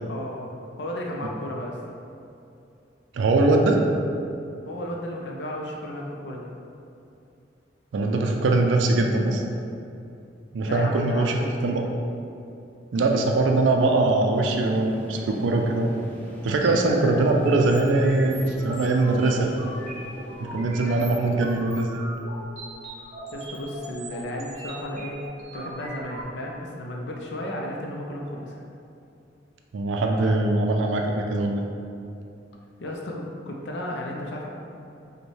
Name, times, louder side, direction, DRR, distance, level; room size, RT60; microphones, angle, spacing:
voice 1, 0.1-0.5 0.8-1.8 4.7-6.5 10.6-11.9 23.3-25.2 25.5-28.6 32.8-34.5, left 1 dB, 65° left, -1 dB, 0.5 m, -33 dB
voice 2, 3.1-3.8 7.9-9.4 10.5-11.4 11.6-11.8 12.9-15.9 16.4-19.5 20.4-22.0 29.7-31.6, right 2 dB, 85° right, 2 dB, 0.4 m, -22 dB
sound 1, 14.3-21.6, left 1 dB, 10° left, 0.4 m, -41 dB
sound 2, 16.6-26.2, right 1 dB, 35° right, 0.8 m, -40 dB
5.1 x 2.2 x 3.1 m, 2.6 s
head